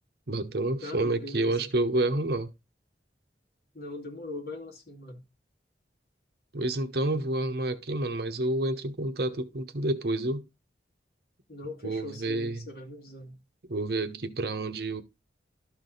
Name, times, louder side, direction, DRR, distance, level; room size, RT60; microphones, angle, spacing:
voice 1, 0.3-2.5 6.5-10.4 11.8-12.6 13.7-15.0, right 2 dB, 60° right, 0.9 m, -29 dB
voice 2, 0.8-1.7 3.7-5.2 11.5-13.4, left 2 dB, 60° left, 2.4 m, -40 dB
12.5 x 4.8 x 4.0 m
head